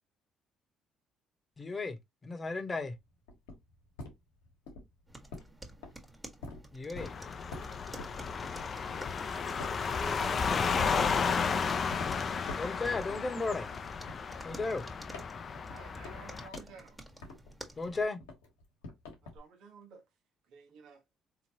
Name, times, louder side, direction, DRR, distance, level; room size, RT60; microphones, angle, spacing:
voice 1, 1.6-2.0 2.2-2.9 6.7-7.1 12.1-12.3 12.5-13.7 14.4-14.8 17.8-18.2, left 3 dB, 35° left, 1.0 m, -34 dB
sound 1, 2.9-9.2 9.6-10.4 10.8-11.5 11.9-12.1 12.4-13.2 13.5-17.6 17.9-19.4, left 2 dB, 90° left, 1.2 m, -47 dB
sound 2, 5.1-18.0, right 1 dB, 10° right, 1.5 m, -52 dB
sound 3, 7.0-16.5, left 5 dB, 50° left, 0.5 m, -33 dB
voice 2, 9.0-11.0 11.3-12.0, right 3 dB, 30° right, 0.7 m, -48 dB
voice 3, 15.7-17.0 19.2-20.1 20.5-21.0, right 5 dB, 75° right, 1.2 m, -54 dB
3.8 x 3.1 x 2.9 m
hypercardioid pair, 55°, 0 cm